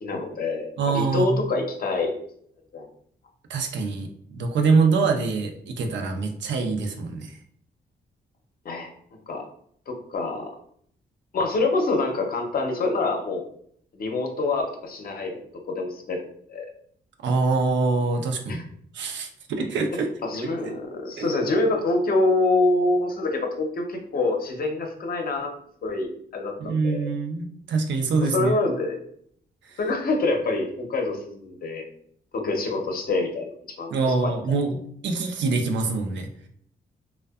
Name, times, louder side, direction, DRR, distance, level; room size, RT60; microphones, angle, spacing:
voice 1, 0.0-2.2 2.7-2.9 8.6-8.9 9.3-9.5 9.9-10.5 11.3-13.4 13.9-16.7 18.5-18.6 20.2-25.5 25.8-27.1 28.3-29.0 29.8-31.8 32.3-34.3, left 2 dB, 55° left, 3 dB, 0.6 m, -26 dB
voice 2, 0.8-1.4 3.5-7.3 17.2-18.6 18.9-20.1 20.6-20.7 21.2-21.3 26.6-28.5 29.7-29.8 33.9-34.8 35.0-36.3, right 4 dB, 85° right, 4 dB, 0.4 m, -24 dB
2.6 x 2.1 x 2.3 m, 0.64 s
cardioid pair, 75°, 18 cm